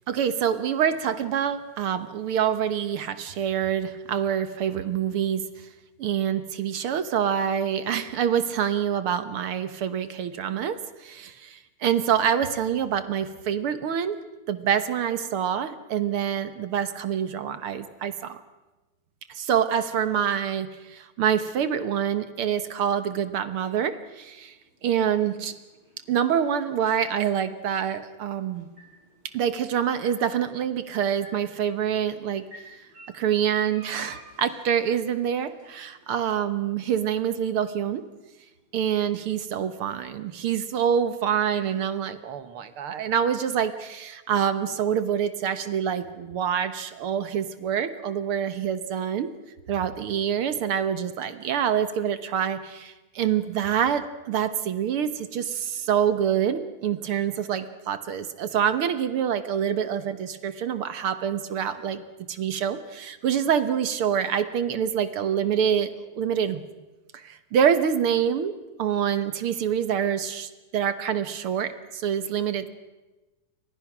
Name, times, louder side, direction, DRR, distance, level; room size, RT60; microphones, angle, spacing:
voice 1, 0.1-5.7 6.0-14.2 14.5-18.4 19.3-24.5 24.8-25.5 26.1-28.7 29.3-32.4 33.1-38.0 38.7-49.3 49.7-62.0 62.3-66.6 67.1-68.5 68.8-72.7, right 8 dB, 60° right, 11 dB, 1.6 m, -26 dB
sound 1, 23.8-39.9, right 1 dB, 45° right, 9.0 m, -55 dB
29.5 x 24.5 x 6.1 m, 1.1 s
omnidirectional pair, 3.5 m